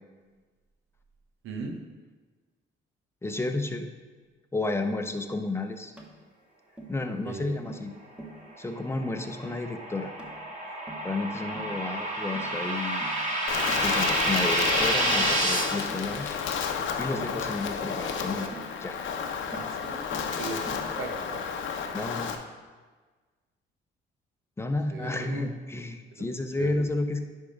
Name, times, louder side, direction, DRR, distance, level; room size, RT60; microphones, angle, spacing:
voice 1, 1.4-1.8 7.2-7.6 19.5-20.0 20.4-21.4 24.9-25.5 26.2-26.3 26.6-26.8, right 3 dB, 90° right, 4 dB, 1.0 m, -38 dB
voice 2, 3.2-3.9 4.5-5.9 6.9-7.9 8.6-10.1 11.0-13.0 13.8-16.3 17.0-18.5 18.8-19.0 21.9-22.3 24.6-27.2, left 2 dB, 15° left, 6 dB, 0.7 m, -31 dB
Tap, 6.0-6.2 6.8-7.0 7.7-7.9 8.2-8.4 8.9-9.1 9.4-9.7 10.2-10.4 10.9-11.1 11.5-11.8 12.3-12.6 13.0-13.3 13.7-13.9 14.3-14.5 15.2-15.4 15.9-16.1 17.1-17.4 18.5-18.7 19.5-19.8 20.1-20.4 20.7-20.9, right 2 dB, 5° right, 1.3 m, -43 dB
sound 1, 8.8-15.6, right 1 dB, 35° right, 1.9 m, -29 dB
Wind, 13.5-22.4, left 6 dB, 75° left, 0.8 m, -31 dB
9.9 x 3.6 x 5.1 m, 1.4 s
cardioid pair, 90°, 20 cm